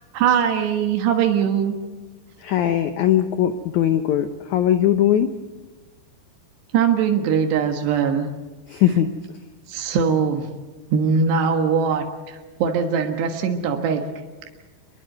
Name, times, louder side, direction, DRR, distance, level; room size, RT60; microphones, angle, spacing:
voice 1, 0.1-1.7 6.7-8.3 9.7-10.5 10.9-14.1, right 6 dB, 90° right, 4 dB, 3.7 m, -21 dB
voice 2, 2.4-5.3 8.7-9.1, left 11 dB, 85° left, 9 dB, 1.7 m, -20 dB
25.0 x 21.5 x 7.8 m, 1.2 s
omnidirectional pair, 4.7 m